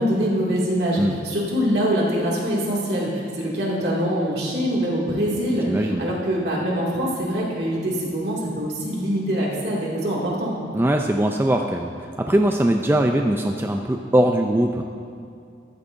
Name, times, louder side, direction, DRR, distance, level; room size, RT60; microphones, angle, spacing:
voice 1, 0.0-5.7 6.0-10.6, equal, 65° right, -5 dB, 2.3 m, -24 dB
voice 2, 5.7-6.0 10.7-14.8, right 1 dB, 15° right, 3 dB, 0.4 m, -21 dB
14.0 x 12.0 x 2.6 m, 2.4 s
head